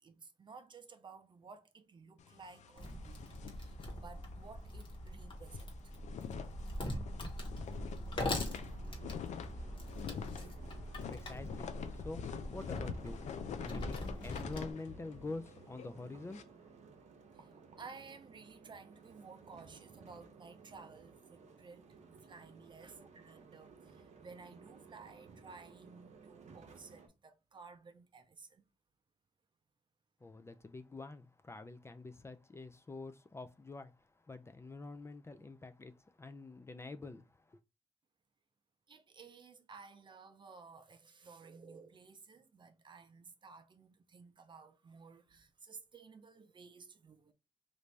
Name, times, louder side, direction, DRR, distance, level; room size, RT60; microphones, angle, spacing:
voice 1, 0.0-3.2 3.5-6.0 17.3-17.5 17.8-21.9 22.2-28.7 38.9-47.3, right 4 dB, 40° right, 0.6 m, -55 dB
sound 1, 2.2-4.5 4.8-4.9 5.3-16.4, left 8 dB, 80° left, 0.4 m, -46 dB
Wood, 2.8-14.7, left 1 dB, 45° left, 1.2 m, -42 dB
sound 2, 8.4-27.1, right 5 dB, 80° right, 0.8 m, -58 dB
voice 2, 10.7-16.7 30.2-37.6, left 3 dB, 20° left, 0.4 m, -47 dB
3.2 x 2.6 x 3.2 m
cardioid pair, 95°, 12 cm